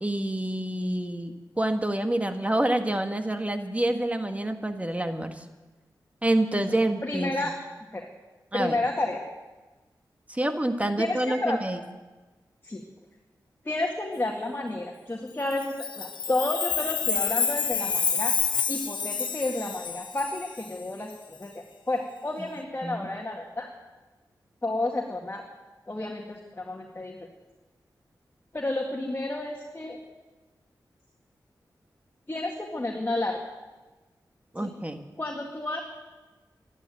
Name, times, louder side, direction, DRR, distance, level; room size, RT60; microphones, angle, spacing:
voice 1, 0.0-5.4 6.2-7.3 8.5-8.8 10.3-11.8 22.8-23.1 34.5-35.0, right 1 dB, 20° right, 6 dB, 1.7 m, -27 dB
voice 2, 7.0-7.6 7.9-8.1 8.5-9.2 11.0-11.6 12.6-12.8 13.6-18.3 18.7-23.7 24.6-25.4 25.9-27.2 28.5-30.0 32.3-33.4 34.6-34.7 35.2-35.8, left 2 dB, 30° left, 0 dB, 2.1 m, -31 dB
Chime, 15.5-20.6, left 6 dB, 90° left, 1.3 m, -28 dB
12.5 x 12.0 x 9.0 m, 1.2 s
cardioid pair, 55°, 8 cm